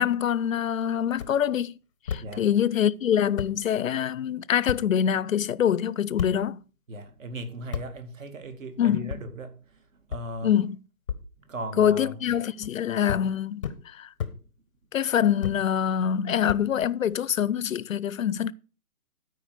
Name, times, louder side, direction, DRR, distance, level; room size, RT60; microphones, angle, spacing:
voice 1, 0.0-1.8 2.1-6.6 8.8-9.2 10.4-10.8 11.8-14.1 14.9-18.5, left 9 dB, 60° left, 0.6 m, -25 dB
sound 1, 1.1-1.3 2.1-2.2 3.0-3.1 3.4-3.5 4.7-4.8 6.2-6.3 7.7-7.9 9.1-9.2 10.1-10.2 11.1-11.2 12.3-12.7 13.1-13.2 13.6-13.8 14.2-14.3 15.4-15.6 16.5-17.2, left 7 dB, 20° left, 0.7 m, -32 dB
voice 2, 6.9-9.8 10.1-10.5 11.5-12.2, right 1 dB, 55° right, 2.3 m, -37 dB
13.0 x 4.9 x 6.6 m
hypercardioid pair, 155°, 46 cm